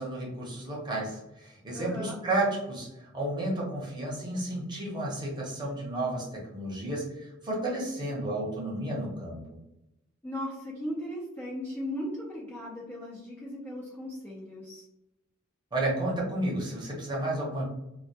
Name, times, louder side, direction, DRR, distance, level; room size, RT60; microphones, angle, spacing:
voice 1, 0.0-9.6 15.7-17.6, right 1 dB, 20° right, -3 dB, 0.7 m, -32 dB
voice 2, 1.7-2.2 10.2-14.9, left 1 dB, 10° left, -5 dB, 0.4 m, -37 dB
2.2 x 2.1 x 2.7 m, 0.91 s
head